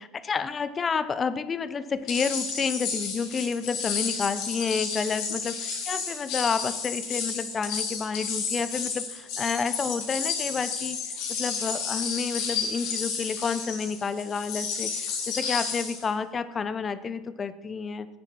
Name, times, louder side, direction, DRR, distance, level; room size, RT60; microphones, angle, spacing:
voice 1, 0.0-11.0 11.3-18.1, left 5 dB, 30° left, 14 dB, 0.8 m, -30 dB
sound 1, 2.1-16.1, left 5 dB, 60° left, 3.0 m, -31 dB
10.5 x 8.9 x 5.5 m, 1.3 s
hypercardioid pair, 70°, 0 cm